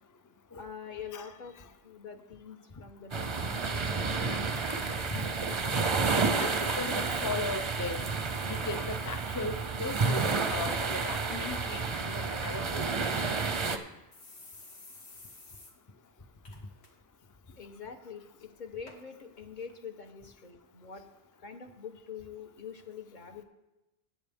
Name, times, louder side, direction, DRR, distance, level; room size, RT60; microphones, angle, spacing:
voice 1, 0.5-1.6 1.8-4.8 17.6-21.1 21.4-23.4, left 6 dB, 50° left, 5 dB, 1.1 m, -45 dB
sound 1, 3.1-13.8, right 4 dB, 35° right, 0.5 m, -30 dB
voice 2, 6.4-8.1 8.5-13.4, left 3 dB, 30° left, 8 dB, 0.3 m, -37 dB
sound 2, 14.1-15.7 16.1-16.2 16.4-16.9 17.2-17.5 18.2-18.3 18.9-19.0 19.7-19.8, left 3 dB, 80° left, 1.7 m, -51 dB
14.0 x 9.0 x 3.5 m, 0.97 s
omnidirectional pair, 1.1 m